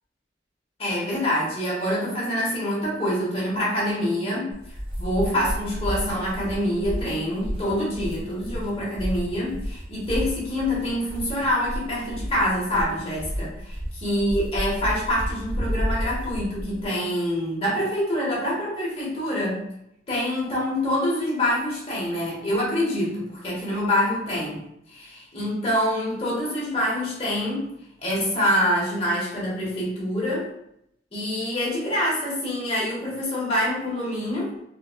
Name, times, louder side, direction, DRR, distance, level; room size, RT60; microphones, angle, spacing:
voice 1, 0.8-19.6 20.1-24.6 24.9-27.7 28.0-30.5 31.1-34.5, equal, 35° left, -5 dB, 1.1 m, -26 dB
sound 1, 4.5-16.8, equal, 55° right, 1.1 m, -31 dB
4.5 x 2.2 x 2.4 m, 0.77 s
head